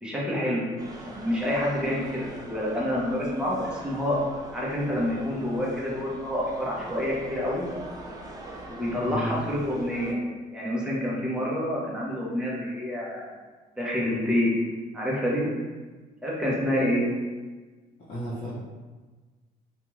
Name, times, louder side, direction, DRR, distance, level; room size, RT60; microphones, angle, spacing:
voice 1, 0.0-0.7 1.0-4.2 4.5-7.7 8.7-10.2 10.5-13.3 13.8-14.5 14.9-15.5 16.2-17.1, left 1 dB, 5° right, -6 dB, 0.8 m, -27 dB
sound 1, 0.8-10.1, right 2 dB, 20° right, 0.4 m, -42 dB
voice 2, 18.1-18.5, equal, 40° left, -11 dB, 0.8 m, -33 dB
2.5 x 2.3 x 3.0 m, 1.3 s
cardioid pair, 110°, 17 cm